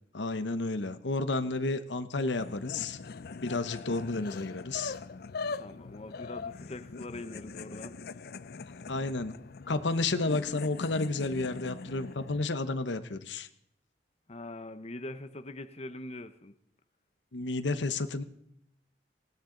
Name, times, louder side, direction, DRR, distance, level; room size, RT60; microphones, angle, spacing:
voice 1, 0.1-3.0 3.4-4.9 8.9-9.3 9.7-13.5 17.3-18.2, left 3 dB, 90° left, 11 dB, 1.0 m, -31 dB
sound 1, 2.4-12.5, left 4 dB, 60° left, 0.5 m, -42 dB
voice 2, 5.6-7.9 14.3-16.5, left 2 dB, 35° left, 10 dB, 0.9 m, -42 dB
19.5 x 17.0 x 3.9 m, 0.73 s
head